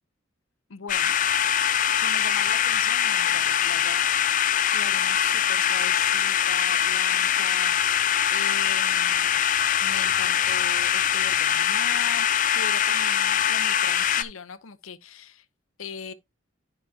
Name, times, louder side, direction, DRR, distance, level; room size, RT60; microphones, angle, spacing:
voice 1, 0.7-1.1 2.0-4.1 4.7-9.5 9.8-15.5 15.8-16.1, left 6 dB, 80° left, 0.7 m, -39 dB
sound 1, 0.9-14.2, left 9 dB, 40° left, 0.4 m, -23 dB
11.5 x 5.1 x 2.8 m
head